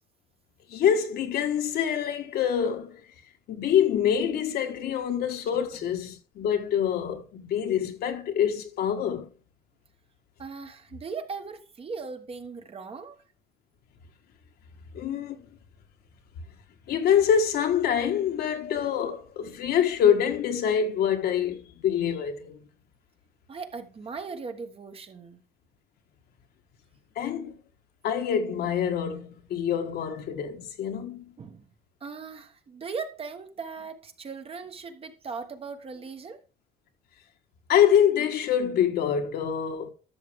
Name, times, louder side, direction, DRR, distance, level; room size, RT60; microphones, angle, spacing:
voice 1, 0.7-3.0 3.5-9.3 14.9-15.5 16.9-22.6 27.1-27.6 28.0-31.2 37.7-39.9, left 8 dB, 70° left, 1.6 m, -25 dB
voice 2, 10.4-13.2 23.5-25.4 31.4-31.7 32.0-36.4, right 5 dB, 35° right, 1.2 m, -38 dB
12.0 x 6.6 x 3.6 m
cardioid pair, 110°, 17 cm